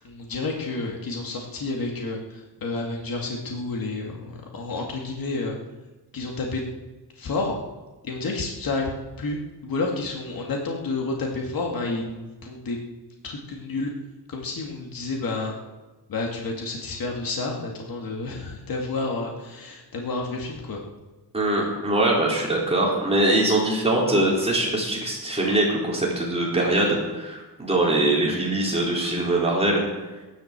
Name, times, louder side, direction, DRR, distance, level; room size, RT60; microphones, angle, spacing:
voice 1, 0.0-5.6 6.1-6.6 7.2-7.5 8.0-8.9 9.2-9.4 9.6-12.8 13.2-13.9 14.3-15.5 16.1-20.8, left 3 dB, 55° left, 0 dB, 2.3 m, -30 dB
voice 2, 21.3-29.8, right 1 dB, 15° right, -4 dB, 4.2 m, -22 dB
16.0 x 11.5 x 7.6 m, 1.2 s
wide cardioid pair, 175°, 42 cm